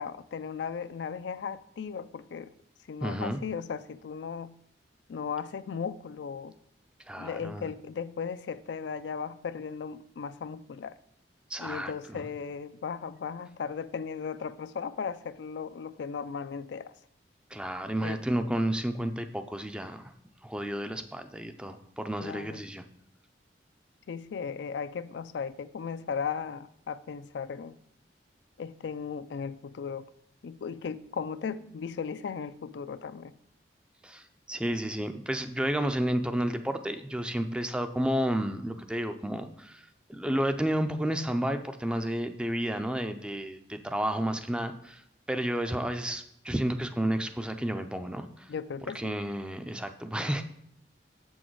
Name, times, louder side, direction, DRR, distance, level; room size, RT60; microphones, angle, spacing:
voice 1, 0.0-2.5 2.9-4.5 5.1-6.5 7.2-11.0 11.6-16.9 18.0-18.2 22.2-22.6 24.1-27.8 28.6-30.1 30.4-33.3 48.5-49.0, left 6 dB, 80° left, 0.4 m, -36 dB
voice 2, 3.0-3.4 7.1-7.7 11.5-12.2 17.5-20.1 20.4-22.8 34.0-48.5 48.9-50.4, right 1 dB, 5° right, 0.4 m, -31 dB
7.8 x 6.3 x 4.6 m
head